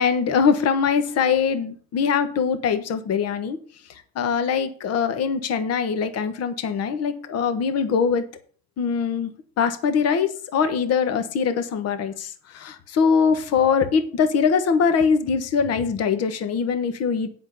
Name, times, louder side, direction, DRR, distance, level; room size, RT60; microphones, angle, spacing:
voice 1, 0.0-3.6 3.9-8.3 8.8-9.3 9.6-17.3, left 6 dB, 50° left, 9 dB, 1.4 m, -22 dB
8.1 x 6.1 x 6.7 m, 0.44 s
supercardioid pair, 100°, 32 cm